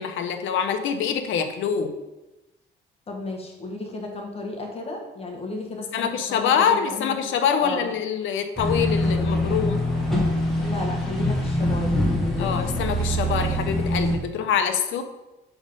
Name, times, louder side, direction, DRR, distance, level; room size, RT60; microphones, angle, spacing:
voice 1, 0.0-1.9 5.9-9.8 12.4-15.0, left 7 dB, 80° left, 7 dB, 0.7 m, -25 dB
voice 2, 3.1-7.9 10.6-12.5, left 2 dB, 30° left, 1 dB, 1.2 m, -34 dB
sound 1, 8.6-14.2, left 1 dB, ahead, 1.2 m, -24 dB
6.2 x 3.6 x 5.2 m, 1.0 s
cardioid pair, 145°, 20 cm